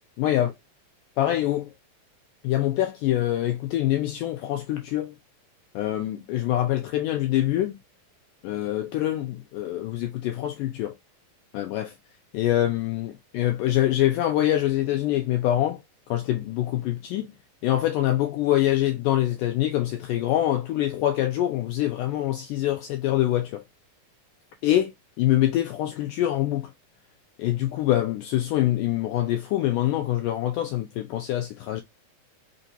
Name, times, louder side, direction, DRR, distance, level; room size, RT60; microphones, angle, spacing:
voice 1, 0.2-0.5 1.2-1.7 2.4-5.2 5.8-7.8 8.4-10.9 11.5-11.9 12.3-15.8 16.1-17.3 17.6-23.6 24.6-24.9 25.2-26.7 27.4-31.8, left 13 dB, 85° left, 1.8 m, -25 dB
5.4 x 2.5 x 2.6 m
omnidirectional pair, 4.2 m